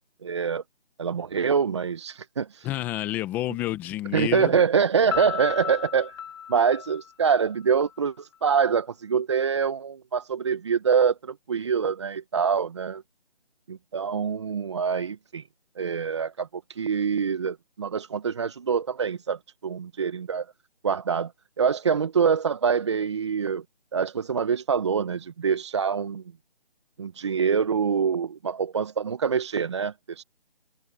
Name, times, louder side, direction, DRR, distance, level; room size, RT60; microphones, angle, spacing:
voice 1, 0.2-0.6 1.0-2.7 4.1-6.2 6.5-13.0 13.7-15.4 15.8-20.5 20.8-21.3 21.6-23.6 23.9-26.2 27.0-30.2, right 6 dB, 30° right, 0.9 m, -25 dB
voice 2, 2.6-4.6, left 15 dB, 5° left, 1.0 m, -29 dB
Piano, 5.1-7.9, left 9 dB, 25° left, 2.7 m, -35 dB
figure-of-eight pair, 160°, 30 cm